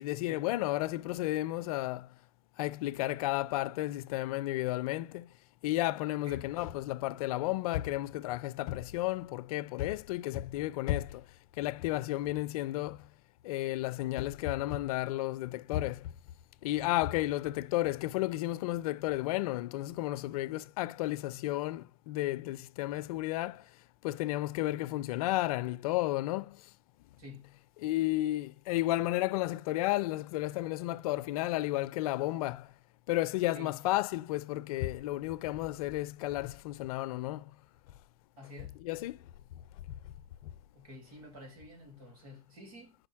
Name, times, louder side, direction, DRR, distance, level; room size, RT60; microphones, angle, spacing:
voice 1, 0.0-2.1 2.6-5.3 5.6-11.2 11.6-13.1 13.4-16.1 16.6-23.6 24.0-26.6 27.8-32.7 33.1-37.5 38.8-39.2 39.9-40.0, left 16 dB, 80° left, 0.4 m, -32 dB
voice 2, 6.2-6.6 16.8-16.9 27.2-27.7 33.5-33.9 38.4-38.9 40.7-43.0, left 2 dB, 85° right, 2.7 m, -50 dB
5.1 x 4.2 x 5.8 m
hypercardioid pair, 90°, 18 cm